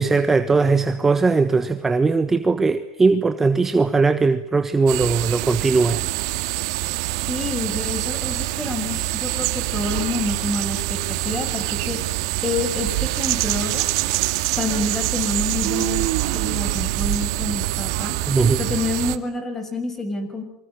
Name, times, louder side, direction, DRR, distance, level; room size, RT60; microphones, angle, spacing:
voice 1, 0.0-6.0 18.3-18.6, right 4 dB, 10° right, 10 dB, 1.3 m, -19 dB
sound 1, 4.9-19.2, right 18 dB, 60° right, 2.2 m, -25 dB
voice 2, 7.3-12.0 12.4-13.9 14.6-18.1 18.6-20.4, left 3 dB, 10° left, 8 dB, 6.5 m, -28 dB
27.0 x 25.0 x 8.9 m, 0.78 s
supercardioid pair, 145°, 3 cm